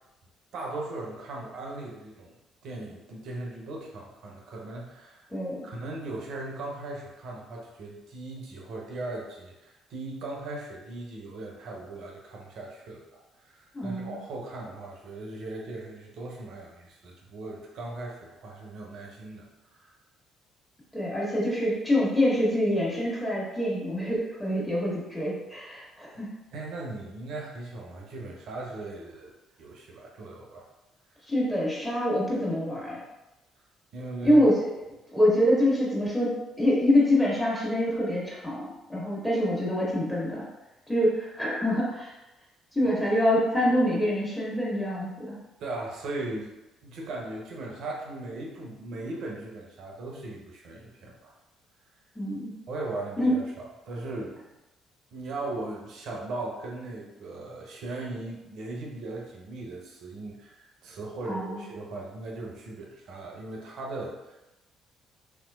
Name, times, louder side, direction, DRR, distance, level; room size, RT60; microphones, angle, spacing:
voice 1, 0.5-2.4 2.6-5.2 5.6-19.9 26.5-29.3 29.6-30.7 33.9-34.4 45.6-46.5 46.8-51.3 52.7-53.4 53.9-54.4 55.1-64.4, right 2 dB, 65° right, -1 dB, 0.7 m, -38 dB
voice 2, 5.3-5.7 13.7-14.2 20.9-26.3 31.2-33.0 34.2-34.7 35.1-36.3 36.6-40.4 40.9-42.1 42.7-45.3 52.1-52.5 53.2-53.4 61.3-61.6, equal, 10° left, -6 dB, 1.5 m, -25 dB
3.2 x 3.0 x 2.3 m, 0.99 s
hypercardioid pair, 50°, 0 cm